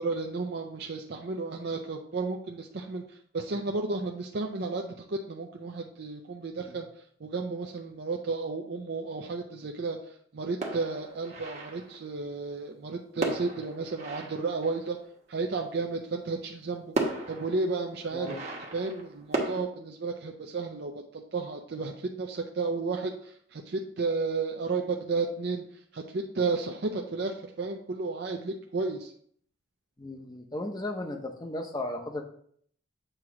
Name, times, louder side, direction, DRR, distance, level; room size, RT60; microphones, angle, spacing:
voice 1, 0.0-3.0 3.3-6.9 7.2-10.0 10.3-15.0 15.3-16.9 17.3-18.4 18.7-25.6 25.9-29.1, right 3 dB, 55° right, 2 dB, 0.5 m, -32 dB
sound 1, 10.6-12.1 13.2-15.2 16.3-16.4 17.0-19.6, right 2 dB, 35° right, 1.0 m, -35 dB
voice 2, 30.0-32.2, left 1 dB, 20° left, 4 dB, 0.7 m, -35 dB
7.8 x 3.0 x 4.8 m, 0.62 s
head